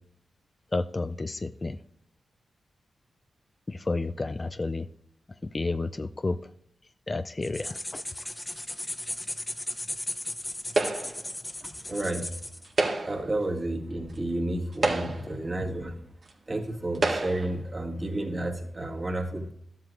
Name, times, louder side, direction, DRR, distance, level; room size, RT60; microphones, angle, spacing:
voice 1, 0.7-1.8 3.7-4.9 5.5-6.4 7.1-8.0, left 3 dB, 35° left, 10 dB, 0.4 m, -31 dB
sound 1, 7.4-12.7, left 1 dB, 15° left, 0.9 m, -36 dB
sound 2, 10.7-11.3 12.6-13.3 14.1-14.2 14.7-15.4 16.3-16.4 16.9-17.5, right 3 dB, 60° right, 1.6 m, -28 dB
voice 2, 11.6-12.3 13.0-16.0 16.5-19.5, right 1 dB, 35° right, 1 dB, 2.1 m, -31 dB
13.0 x 7.6 x 2.5 m, 0.67 s
cardioid pair, 50°, 0 cm